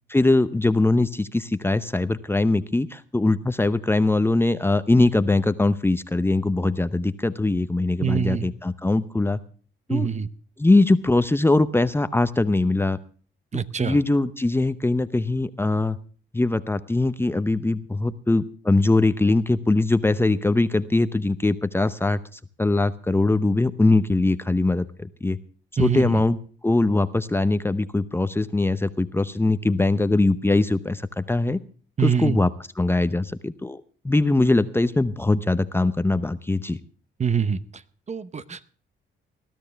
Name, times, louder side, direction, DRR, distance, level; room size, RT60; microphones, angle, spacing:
voice 1, 0.1-9.4 9.9-10.1 10.6-13.0 13.8-16.0 16.3-25.4 25.8-26.4 26.6-31.6 32.0-32.5 32.8-36.8, left 2 dB, 10° left, 13 dB, 0.7 m, -21 dB
voice 2, 8.0-8.4 9.9-10.3 13.5-14.0 25.8-26.2 32.0-32.4 37.2-37.6 38.1-38.7, right 7 dB, 35° right, 14 dB, 0.9 m, -24 dB
20.5 x 12.5 x 3.4 m, 0.41 s
cardioid pair, 90°, 20 cm